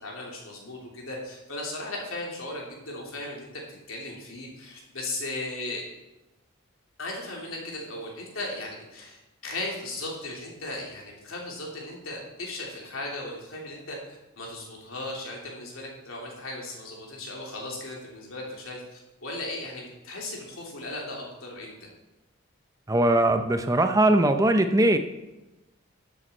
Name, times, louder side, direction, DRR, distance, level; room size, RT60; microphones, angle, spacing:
voice 1, 0.0-5.8 7.0-21.7, left 2 dB, 75° left, -2 dB, 3.0 m, -37 dB
voice 2, 22.9-25.0, right 1 dB, 15° right, 7 dB, 0.5 m, -20 dB
12.5 x 7.8 x 4.4 m, 1.0 s
head